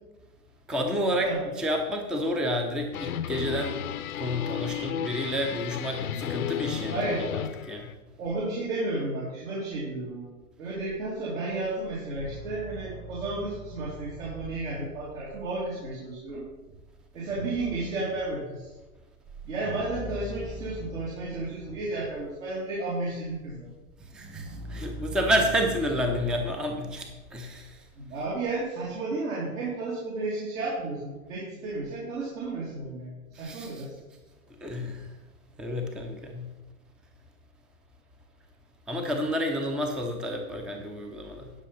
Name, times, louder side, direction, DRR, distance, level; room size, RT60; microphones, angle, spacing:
voice 1, 0.7-1.3 1.6-3.8 4.2-7.0 7.3-7.4 7.7-7.9 24.1-27.8 33.3-33.8 34.6-35.1 35.6-36.5 38.9-41.5, equal, ahead, 4 dB, 0.5 m, -30 dB
sound 1, 2.9-7.9, left 9 dB, 75° left, 0.7 m, -33 dB
voice 2, 6.9-7.3 8.2-10.3 10.6-16.5 17.1-18.7 19.5-23.7 28.0-33.9, right 2 dB, 65° right, -5 dB, 3.0 m, -32 dB
sound 2, 12.2-22.4 22.7-28.4, right 1 dB, 20° right, 1.4 m, -43 dB
10.5 x 5.8 x 5.6 m, 1.2 s
hypercardioid pair, 120°, 44 cm